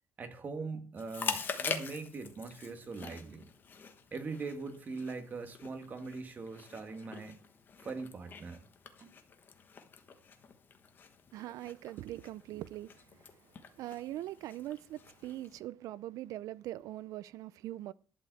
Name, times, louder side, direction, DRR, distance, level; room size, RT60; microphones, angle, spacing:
voice 1, 0.2-3.5 4.1-7.4 7.8-8.6 9.0-9.2, right 4 dB, 30° right, 1.5 m, -41 dB
Chewing mastication, 1.0-15.6, left 6 dB, 35° left, 1.2 m, -45 dB
voice 2, 11.3-13.3 13.8-17.9, right 14 dB, 70° right, 0.5 m, -42 dB
11.5 x 4.9 x 7.8 m
cardioid pair, 165°, 6 cm